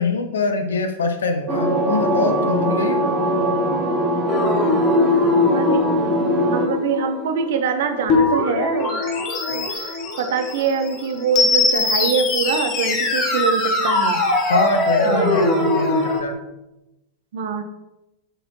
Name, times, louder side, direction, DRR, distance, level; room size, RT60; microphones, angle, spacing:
voice 1, 0.0-3.0 14.5-16.4, left 3 dB, 65° left, 7 dB, 0.7 m, -23 dB
sound 1, 1.5-6.7, right 1 dB, 25° right, 1.1 m, -21 dB
sound 2, 4.3-16.2, left 3 dB, 35° left, 1.0 m, -21 dB
voice 2, 5.5-9.1 9.5-14.2 15.0-15.4 17.3-17.6, right 5 dB, 55° right, 7 dB, 0.7 m, -24 dB
7.9 x 4.1 x 3.0 m, 0.96 s
figure-of-eight pair, 90°, 0 cm